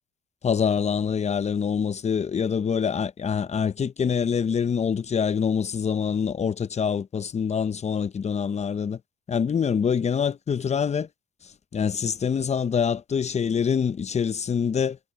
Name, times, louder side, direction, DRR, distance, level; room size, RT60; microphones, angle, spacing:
voice 1, 0.4-9.0 9.3-11.1 11.7-15.0, left 7 dB, 35° left, 0.6 m, -25 dB
cardioid pair, 90°, 20 cm